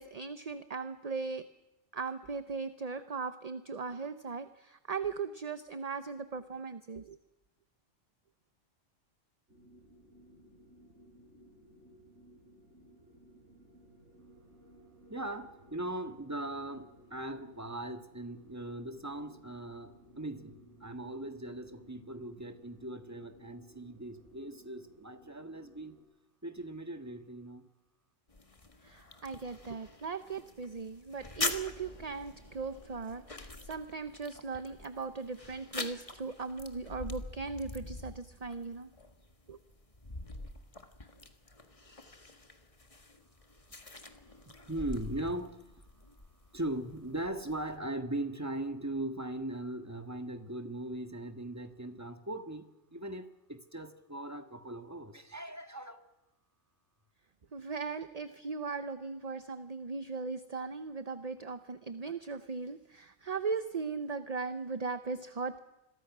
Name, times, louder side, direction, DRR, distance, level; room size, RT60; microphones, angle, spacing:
voice 1, 0.0-1.4 1.9-7.2 28.8-38.9 39.5-39.6 57.5-65.6, right 4 dB, 35° right, 11 dB, 0.8 m, -38 dB
sound 1, 9.5-26.0, equal, 60° right, 6.8 m, -59 dB
voice 2, 15.1-26.0 26.4-27.6 44.5-45.6 46.5-56.0, right 1 dB, 15° right, 7 dB, 1.6 m, -39 dB
sound 2, 28.3-47.8, left 2 dB, 25° left, 1.7 m, -44 dB
27.5 x 22.5 x 6.2 m, 1.0 s
omnidirectional pair, 1.3 m